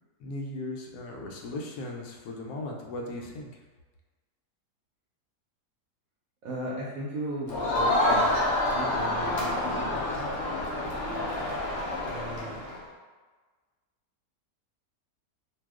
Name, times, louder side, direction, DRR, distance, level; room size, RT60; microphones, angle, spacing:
voice 1, 0.2-3.6, left 2 dB, 75° left, 0 dB, 1.1 m, -37 dB
voice 2, 6.4-10.3 12.0-12.6, right 1 dB, 70° right, -6 dB, 0.9 m, -37 dB
Crowd, 7.5-12.8, left 1 dB, 60° left, 0.8 m, -28 dB
2.7 x 2.3 x 3.4 m, 1.3 s
omnidirectional pair, 1.7 m